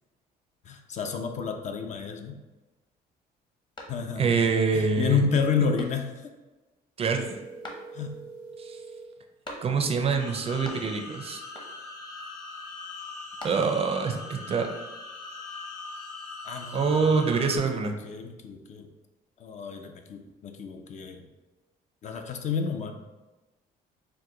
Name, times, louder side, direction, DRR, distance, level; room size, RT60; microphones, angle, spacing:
voice 1, 0.6-2.4 3.9-4.5 4.7-6.3 7.9-8.2 16.4-17.0 17.7-18.9 19.4-21.2 22.0-23.0, left 5 dB, 45° left, 5 dB, 0.5 m, -30 dB
sound 1, 3.7-4.4 4.9-5.0 5.7-6.4 7.6-8.3 9.4-10.1 10.3-11.1 11.5-12.0 13.0-14.0, left 1 dB, 25° left, 0.9 m, -45 dB
voice 2, 4.2-5.2 7.0-7.4 8.6-8.8 9.6-11.4 13.4-14.7 16.7-17.9, right 5 dB, 35° right, 5 dB, 0.5 m, -25 dB
sound 2, 7.1-9.2, right 4 dB, 80° right, 0.6 m, -44 dB
sound 3, 10.2-17.6, left 3 dB, 80° left, 1.2 m, -41 dB
4.5 x 2.2 x 3.7 m, 1.1 s
cardioid pair, 110°, 17 cm